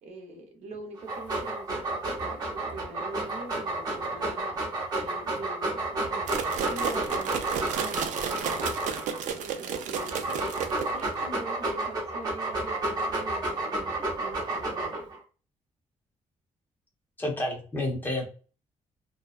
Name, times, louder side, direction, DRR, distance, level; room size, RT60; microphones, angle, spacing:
voice 1, 0.0-4.6 5.0-7.4 7.7-8.7 9.3-10.2 10.9-15.1, right 2 dB, 60° right, 3 dB, 0.7 m, -44 dB
Dog, 1.0-9.2 9.8-15.2, right 2 dB, 30° right, 0.7 m, -31 dB
sound 1, 6.3-11.1, right 7 dB, 80° right, 0.4 m, -33 dB
voice 2, 17.2-18.3, left 1 dB, 15° left, 0 dB, 0.7 m, -30 dB
2.7 x 2.2 x 2.3 m, 0.37 s
cardioid pair, 170°, 13 cm